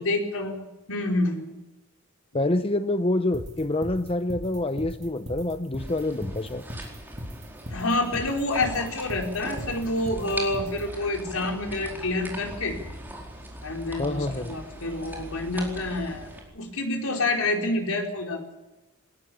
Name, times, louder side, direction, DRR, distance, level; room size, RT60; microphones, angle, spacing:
voice 1, 0.0-1.5 7.7-12.8 13.6-18.6, left 2 dB, 75° left, 2 dB, 4.6 m, -28 dB
voice 2, 2.3-6.7 14.0-14.5, left 2 dB, 25° left, 10 dB, 0.7 m, -27 dB
sound 1, 3.3-10.8, equal, 30° right, 2.9 m, -37 dB
sound 2, 5.8-16.4, right 1 dB, 10° right, 4.6 m, -40 dB
21.0 x 20.0 x 7.2 m, 1.0 s
head